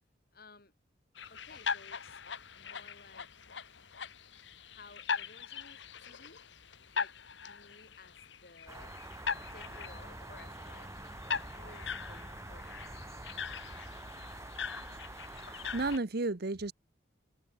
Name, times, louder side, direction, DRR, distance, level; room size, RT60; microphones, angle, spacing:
voice 1, 0.3-0.7 1.3-2.2 2.6-3.5 4.6-6.5 6.9-7.2 7.4-9.0 9.5-13.1, left 3 dB, 55° left, 6.6 m, -57 dB
sound 1, 1.1-16.0, left 6 dB, 70° left, 1.5 m, -41 dB
sound 2, 8.7-16.0, right 2 dB, 15° right, 3.5 m, -46 dB
voice 2, 15.4-16.7, right 2 dB, 60° right, 1.0 m, -33 dB
head